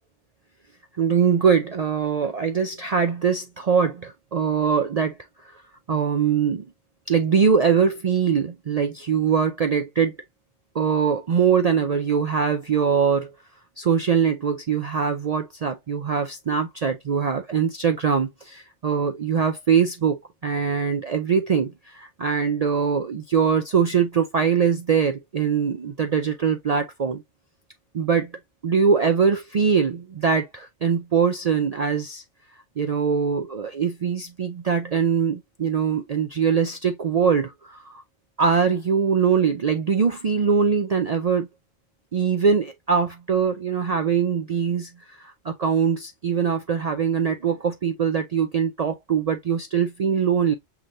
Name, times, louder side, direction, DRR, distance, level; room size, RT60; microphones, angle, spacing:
voice 1, 0.9-5.2 5.4-5.6 5.9-6.6 7.1-10.2 10.7-13.3 13.8-27.2 27.9-28.3 28.6-32.2 32.8-38.0 38.4-41.5 42.1-50.5, right 6 dB, 55° right, 0.4 m, -22 dB
5.8 x 3.2 x 2.5 m
omnidirectional pair, 1.2 m